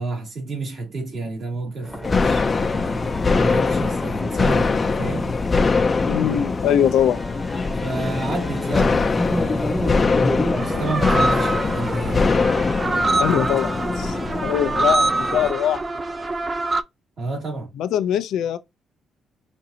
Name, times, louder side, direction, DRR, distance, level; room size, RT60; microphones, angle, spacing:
voice 1, 0.0-3.0 3.3-5.4 7.8-10.2 10.6-12.3 17.2-17.7, right 2 dB, 50° right, 2.3 m, -30 dB
sound 1, 1.8-10.8, left 1 dB, 5° right, 1.1 m, -31 dB
sound 2, 2.0-15.5, left 4 dB, 30° left, 0.5 m, -22 dB
voice 2, 6.1-7.2 13.2-13.7 14.0-14.2 14.4-15.8 17.8-18.6, left 9 dB, 80° left, 0.5 m, -21 dB
sound 3, 10.6-16.8, right 2 dB, 30° right, 0.4 m, -25 dB
5.1 x 2.6 x 2.8 m
cardioid pair, 90°, 0 cm